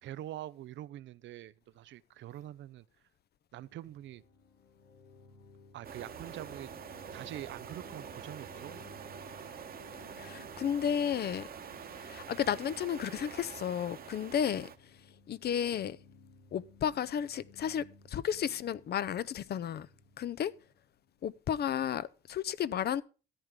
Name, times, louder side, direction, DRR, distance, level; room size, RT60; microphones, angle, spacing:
voice 1, 0.0-2.9 3.5-4.2 5.7-6.7 7.1-8.9, right 13 dB, 70° right, 0.5 m, -44 dB
sound 1, 3.9-21.5, left 4 dB, 85° left, 2.8 m, -59 dB
sound 2, 5.8-14.8, right 7 dB, 50° right, 1.1 m, -46 dB
voice 2, 10.2-11.5 12.0-14.7 15.3-16.0 16.5-19.9 20.2-20.5 21.2-23.0, left 9 dB, 55° left, 0.6 m, -33 dB
14.0 x 8.8 x 3.7 m
cardioid pair, 90°, 20 cm